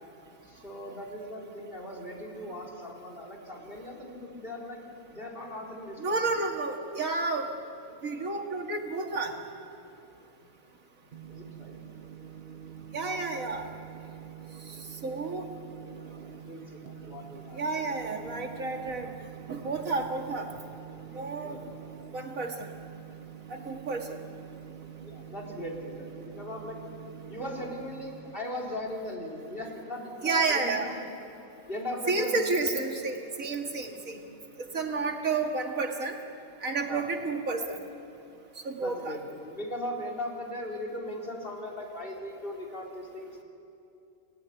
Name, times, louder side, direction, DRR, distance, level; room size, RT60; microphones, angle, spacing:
voice 1, 0.4-6.1 11.3-11.8 16.4-17.6 21.4-21.8 25.0-26.8 27.3-31.1 31.7-32.6 36.9-37.1 38.8-43.3, left 1 dB, 40° left, 0 dB, 4.3 m, -38 dB
voice 2, 6.0-7.5 8.0-9.3 12.9-13.7 14.7-15.5 17.5-19.1 19.5-20.5 21.1-21.6 22.1-22.7 23.5-24.2 30.2-30.9 32.1-34.2 34.6-36.2 36.6-37.8 38.6-39.2, right 3 dB, 85° right, 2 dB, 2.5 m, -31 dB
sound 1, 11.1-28.4, right 9 dB, 50° right, 0.9 m, -46 dB
30.0 x 17.0 x 9.7 m, 2.7 s
omnidirectional pair, 1.4 m